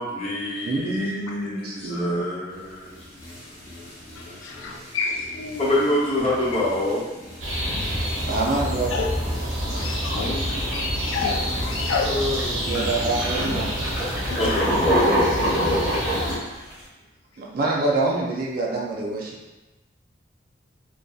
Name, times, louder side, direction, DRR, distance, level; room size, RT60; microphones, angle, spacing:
voice 1, 0.0-3.0 5.6-7.0 8.7-8.8 10.1-10.9 12.1-13.1 14.4-15.0 15.4-15.7, left 1 dB, 35° left, -7 dB, 0.7 m, -27 dB
voice 2, 0.6-2.3 8.3-8.9 12.6-13.9 17.4-19.4, right 2 dB, 50° right, -2 dB, 0.4 m, -26 dB
sound 1, 2.5-14.5, left 1 dB, 60° left, 0.8 m, -43 dB
voice 3, 4.1-5.7 8.9-9.1 9.8-12.3 14.3-14.6 15.9-16.5 18.6-18.8, left 4 dB, 90° left, 1 dB, 0.4 m, -31 dB
sound 2, 7.4-16.4, equal, 75° right, 0.7 m, -28 dB
sound 3, 10.5-10.7 11.2-11.7 12.3-12.4 12.7-16.8, equal, 5° right, 0.7 m, -23 dB
2.6 x 2.1 x 2.3 m, 1.1 s
head